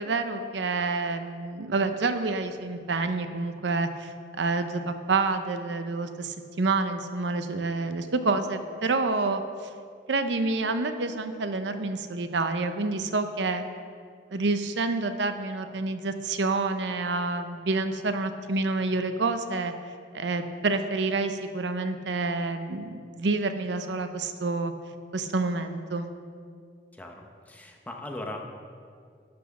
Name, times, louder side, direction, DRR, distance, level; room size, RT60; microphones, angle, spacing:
voice 1, 0.0-9.4 10.1-13.6 14.3-19.7 20.1-24.7 25.1-26.1, right 3 dB, 80° right, 9 dB, 0.7 m, -28 dB
voice 2, 26.9-28.4, left 1 dB, 10° left, 2 dB, 0.9 m, -39 dB
12.0 x 6.1 x 6.1 m, 2.2 s
head